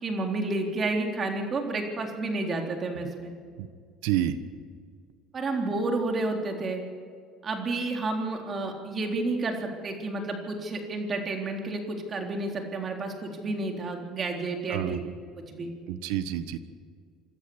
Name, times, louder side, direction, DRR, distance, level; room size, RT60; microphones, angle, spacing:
voice 1, 0.0-3.3 5.3-6.8 7.4-15.0 15.5-15.7, right 2 dB, 35° right, 3 dB, 3.8 m, -30 dB
voice 2, 4.0-4.4 14.7-15.0 15.9-16.6, right 12 dB, 85° right, 12 dB, 1.3 m, -28 dB
26.5 x 13.0 x 8.1 m, 2.1 s
supercardioid pair, 95°, 0 cm